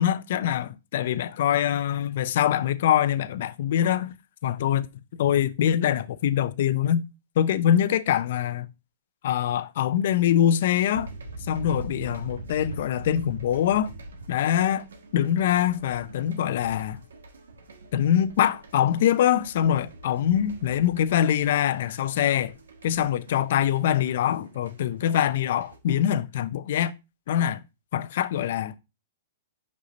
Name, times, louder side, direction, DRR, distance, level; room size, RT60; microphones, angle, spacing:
voice 1, 0.0-4.1 4.4-4.9 5.2-7.0 7.4-8.7 9.2-11.1 11.5-13.9 14.3-14.8 15.1-17.0 17.9-22.5 22.8-26.9 27.3-27.6 27.9-28.8, left 10 dB, 60° left, 0.5 m, -24 dB
sound 1, 10.9-25.8, right 2 dB, 90° right, 1.4 m, -43 dB
5.5 x 5.4 x 4.0 m
hypercardioid pair, 140°, 0 cm